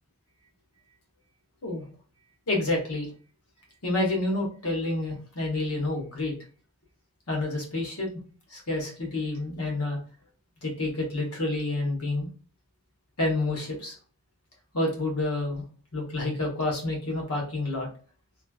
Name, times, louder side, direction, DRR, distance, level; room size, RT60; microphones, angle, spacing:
voice 1, 2.5-3.1 3.8-6.3 7.3-8.1 8.5-10.0 10.6-12.3 13.2-13.9 14.7-15.6 15.9-17.9, left 2 dB, 90° left, 0 dB, 1.1 m, -28 dB
3.1 x 2.4 x 2.3 m, 0.40 s
head